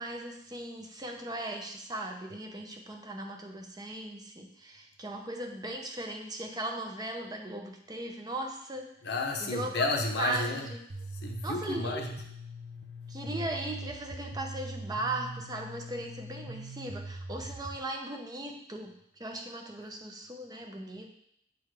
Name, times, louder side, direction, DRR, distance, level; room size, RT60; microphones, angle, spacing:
voice 1, 0.0-8.9 9.4-9.9 10.2-10.8 11.4-12.0 13.1-21.1, right 1 dB, 20° right, 2 dB, 0.6 m, -38 dB
voice 2, 9.0-10.7 11.2-12.1, left 3 dB, 65° left, 3 dB, 0.8 m, -31 dB
sound 1, 10.9-17.8, right 1 dB, 65° right, 0.7 m, -42 dB
8.2 x 3.8 x 3.3 m, 0.72 s
head